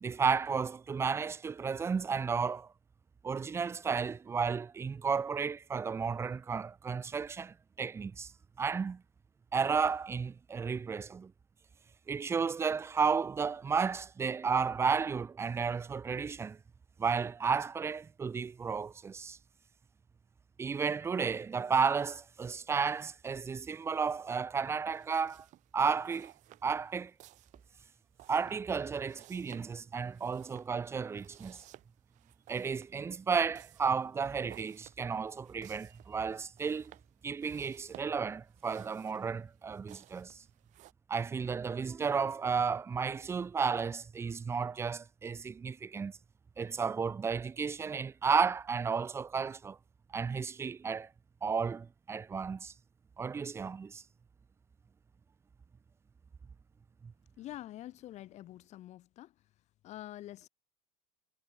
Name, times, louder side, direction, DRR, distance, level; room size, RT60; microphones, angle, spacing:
voice 1, 0.0-2.7 3.2-8.3 8.6-9.0 9.5-11.3 12.1-16.6 17.0-19.4 20.6-25.5 25.7-26.3 26.6-27.1 28.3-31.6 32.5-36.9 37.2-40.4 41.1-46.1 46.6-49.8 50.1-51.1 51.4-52.7 53.2-54.0, right 5 dB, 15° right, 0.7 m, -33 dB
sound 1, 24.8-40.9, right 16 dB, 50° right, 5.5 m, -58 dB
voice 2, 57.4-59.3 59.8-60.5, left 14 dB, 45° left, 4.1 m, -46 dB
supercardioid pair, 130°, 16 cm